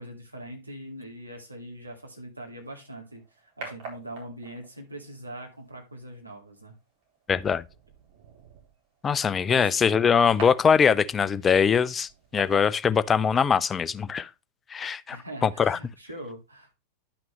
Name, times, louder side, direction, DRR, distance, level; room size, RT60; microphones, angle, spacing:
voice 1, 0.0-6.7 9.5-9.7 15.1-16.8, right 1 dB, 85° right, 2.3 m, -42 dB
sound 1, 2.6-13.6, right 4 dB, 45° right, 4.2 m, -47 dB
voice 2, 7.3-7.6 9.0-14.3 14.7-15.2 15.4-15.8, left 6 dB, 20° left, 0.5 m, -22 dB
10.5 x 5.9 x 3.3 m
figure-of-eight pair, 90°, 0 cm